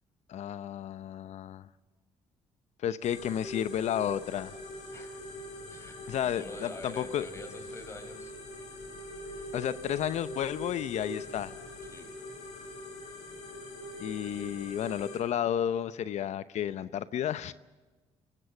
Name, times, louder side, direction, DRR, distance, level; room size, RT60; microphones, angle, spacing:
voice 1, 0.3-1.7 2.8-4.6 6.1-7.2 9.5-11.5 14.0-17.5, left 10 dB, 65° left, 15 dB, 0.8 m, -32 dB
sound 1, 3.0-15.2, left 1 dB, 85° left, 6.0 m, -43 dB
voice 2, 4.9-5.2 5.7-8.3 11.9-12.1, left 1 dB, 20° left, 7 dB, 4.7 m, -46 dB
26.0 x 17.0 x 7.1 m, 1.2 s
cardioid pair, 85°, 13 cm